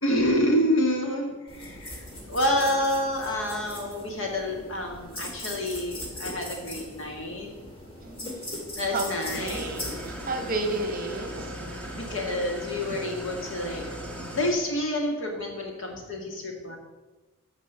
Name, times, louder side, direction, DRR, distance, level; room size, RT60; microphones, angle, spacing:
voice 1, 0.0-7.5 8.8-9.7 11.9-13.9 14.3-16.8, left 1 dB, 60° left, 1 dB, 2.2 m, -28 dB
sound 1, 1.5-10.9, left 1 dB, 25° left, 2.2 m, -40 dB
voice 2, 8.0-8.6 8.9-9.1 9.4-11.9 14.2-14.3, right 2 dB, 40° right, 5 dB, 1.2 m, -33 dB
Engine starting / Idling, 9.2-14.5, equal, 5° left, 1.5 m, -38 dB
14.5 x 5.1 x 5.7 m, 1.2 s
head